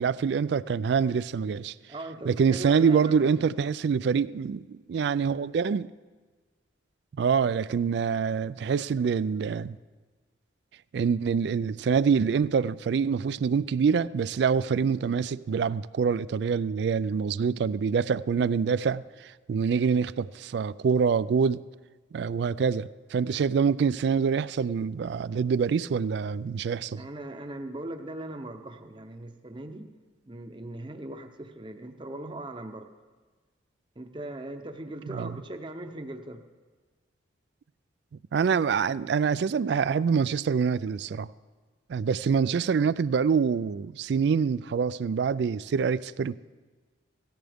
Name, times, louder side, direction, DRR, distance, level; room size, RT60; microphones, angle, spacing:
voice 1, 0.0-1.7 2.3-5.9 7.2-9.7 10.9-21.6 22.1-27.0 35.1-35.3 38.3-41.3 41.9-46.3, right 6 dB, 60° right, 0.3 m, -25 dB
voice 2, 1.9-3.5 27.0-29.9 30.2-32.9 34.0-36.4, right 1 dB, 25° right, 0.8 m, -39 dB
17.5 x 14.0 x 3.5 m
head